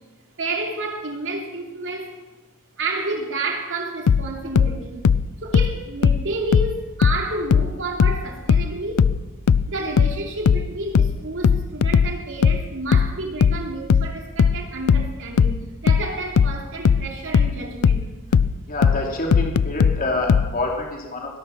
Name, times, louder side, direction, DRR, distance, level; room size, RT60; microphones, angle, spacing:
voice 1, 0.4-2.2 2.8-5.1 5.4-9.1 9.7-18.1, right 2 dB, 60° right, 2 dB, 2.8 m, -30 dB
sound 1, 4.1-7.3 7.5-20.5, left 6 dB, 75° left, 0.4 m, -18 dB
voice 2, 18.7-21.4, left 2 dB, 40° left, 0 dB, 3.0 m, -27 dB
19.0 x 11.5 x 5.8 m, 1.2 s
head